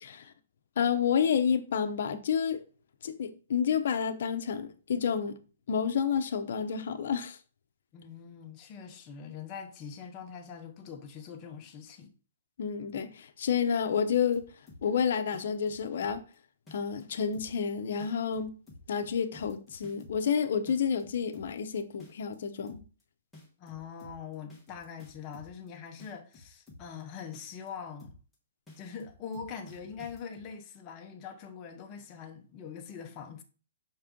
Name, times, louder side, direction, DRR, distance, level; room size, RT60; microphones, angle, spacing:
voice 1, 0.8-2.6 3.0-5.3 5.7-7.4 12.6-14.4 14.8-16.2 16.7-18.5 18.9-22.8, left 7 dB, 60° left, 0.7 m, -29 dB
voice 2, 7.9-12.1 23.6-28.2 28.8-33.4, left 6 dB, 20° left, 0.8 m, -43 dB
sound 1, 14.1-15.0 15.3-16.3 16.7-17.0 17.3-17.7 18.0-20.3 20.7-21.7 22.0-22.3 22.7-23.0 23.3-25.7 26.0-27.0 27.3-27.7 28.0-28.3 28.7-30.5, left 2 dB, 5° left, 1.1 m, -52 dB
6.0 x 4.2 x 3.7 m
hypercardioid pair, 170°, 0 cm